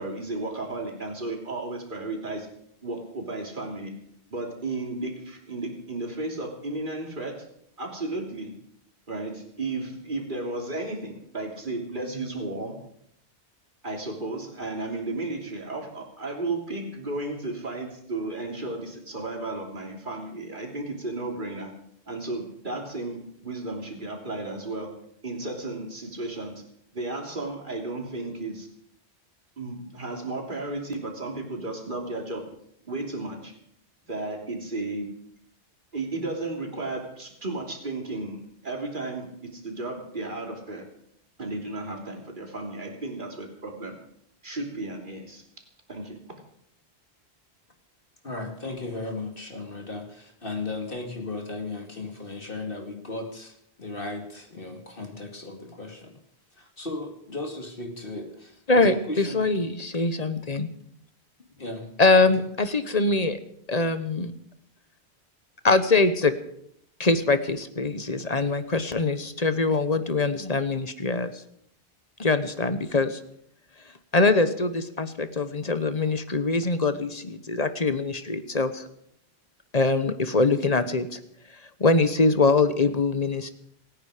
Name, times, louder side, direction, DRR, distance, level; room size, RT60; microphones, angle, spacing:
voice 1, 0.0-2.5 2.8-4.0 4.3-7.4 7.8-8.6 9.1-12.8 13.8-21.7 22.1-24.9 25.2-26.6 26.9-28.7 29.6-32.4 32.8-33.5 34.0-35.1 35.9-40.9 41.4-44.0 44.4-45.4 45.9-46.2, right 2 dB, 50° right, 1 dB, 3.2 m, -34 dB
voice 2, 48.2-56.2 56.6-59.5 61.6-61.9, left 2 dB, 55° left, 3 dB, 2.7 m, -36 dB
voice 3, 58.7-60.7 62.0-63.4 63.7-64.3 65.6-66.3 67.0-71.3 72.2-73.2 74.1-78.8 79.7-81.2 81.8-83.5, left 3 dB, 40° left, 11 dB, 1.2 m, -23 dB
27.5 x 10.0 x 5.0 m, 0.71 s
omnidirectional pair, 1.1 m